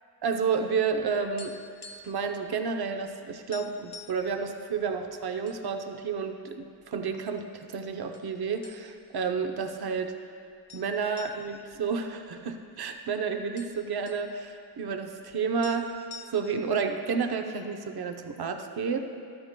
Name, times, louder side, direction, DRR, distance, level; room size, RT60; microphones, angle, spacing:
voice 1, 0.2-1.5 2.0-10.1 10.7-16.0 16.3-19.0, right 5 dB, 60° right, 5 dB, 0.7 m, -31 dB
sound 1, 1.2-2.3 2.5-2.7 3.1-3.2 3.5-4.3 4.9-5.6 6.0-6.1 6.8-7.4 8.1-8.3 8.6-9.2 9.5-9.6 10.7-12.7 13.0-13.1 13.3-14.3 15.3-15.4 15.6-16.7, left 5 dB, 65° left, 1.2 m, -47 dB
13.0 x 12.5 x 2.2 m, 2.4 s
wide cardioid pair, 70°, 42 cm